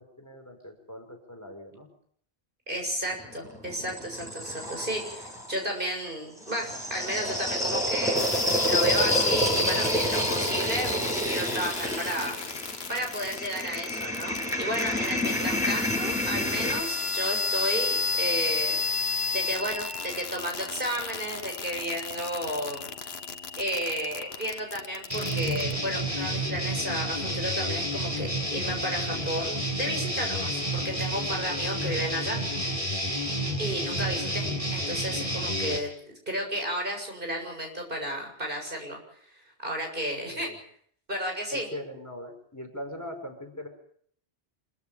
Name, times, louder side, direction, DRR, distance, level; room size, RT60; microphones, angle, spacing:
voice 1, 0.0-1.9 31.7-31.8 40.3-40.6 41.5-43.7, left 1 dB, 15° left, 4 dB, 5.2 m, -41 dB
voice 2, 2.7-12.4 12.9-18.8 19.3-22.9 23.6-32.5 33.6-35.9 36.3-39.0 39.6-40.5 41.1-41.7, equal, 55° right, 2 dB, 7.2 m, -33 dB
sound 1, 3.1-5.5 6.4-16.8, left 1 dB, 5° right, 8.0 m, -28 dB
sound 2, 8.2-25.7, left 4 dB, 75° left, 1.4 m, -33 dB
sound 3, 25.1-35.8, equal, 30° right, 7.4 m, -30 dB
26.5 x 15.5 x 8.8 m, 0.64 s
omnidirectional pair, 1.1 m